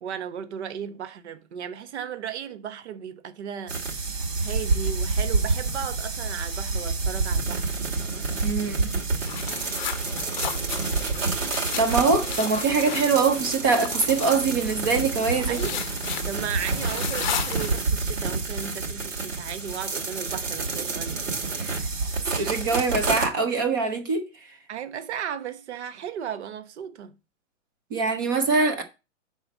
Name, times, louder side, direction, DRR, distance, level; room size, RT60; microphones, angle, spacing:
voice 1, 0.0-3.8 4.4-7.7 8.0-8.3 10.0-10.7 15.5-15.8 16.2-21.3 24.7-27.2, right 8 dB, 60° right, 1.0 m, -35 dB
sound 1, 3.7-23.3, right 4 dB, 90° right, 2.7 m, -28 dB
voice 2, 8.4-8.9 11.8-15.6 21.6-21.9 22.3-24.6 27.9-28.8, right 4 dB, 20° right, 0.5 m, -23 dB
sound 2, 9.2-17.8, left 9 dB, 40° left, 0.7 m, -35 dB
5.6 x 4.2 x 5.9 m
hypercardioid pair, 160°, 38 cm